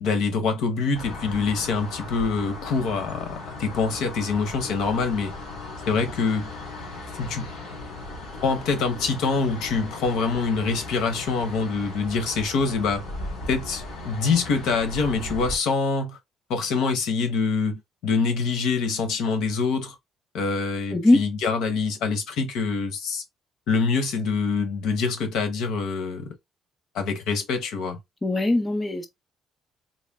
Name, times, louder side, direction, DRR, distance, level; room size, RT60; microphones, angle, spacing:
voice 1, 0.0-5.3 5.8-6.5 7.2-7.5 8.4-13.0 13.5-16.2 16.5-20.0 20.3-23.2 23.7-26.4 26.9-28.0, left 4 dB, 80° left, 1.0 m, -25 dB
sound 1, 0.9-15.6, left 2 dB, 65° left, 2.3 m, -37 dB
voice 2, 20.9-21.2 28.2-29.1, left 2 dB, 10° left, 0.6 m, -20 dB
4.1 x 2.1 x 3.5 m
cardioid pair, 170°, 0 cm